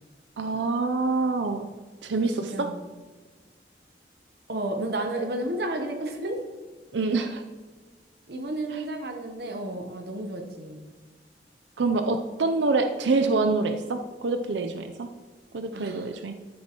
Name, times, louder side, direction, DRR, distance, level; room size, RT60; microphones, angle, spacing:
voice 1, 0.4-1.7 2.0-2.7 6.9-7.4 8.7-8.8 11.8-15.1 15.5-16.3, right 3 dB, 90° right, 7 dB, 0.5 m, -26 dB
voice 2, 2.2-2.8 4.5-6.4 8.3-10.9 15.7-16.1, right 1 dB, 65° right, 3 dB, 0.9 m, -32 dB
13.0 x 7.3 x 3.0 m, 1.4 s
head